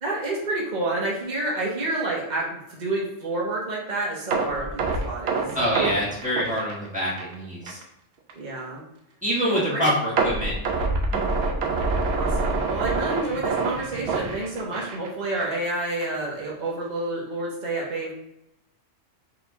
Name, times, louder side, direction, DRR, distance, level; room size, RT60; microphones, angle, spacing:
voice 1, 0.0-5.9 8.3-8.8 9.5-10.0 12.1-18.1, right 2 dB, 40° right, -3 dB, 1.1 m, -29 dB
sound 1, 4.3-7.3 7.7-7.8 8.3-8.4 10.2-15.1 15.4-15.6 16.0-16.1, right 3 dB, 65° right, 0.9 m, -26 dB
voice 2, 5.5-7.8 9.2-10.5, equal, 5° right, -7 dB, 1.5 m, -25 dB
4.1 x 3.0 x 3.5 m, 0.84 s
omnidirectional pair, 1.2 m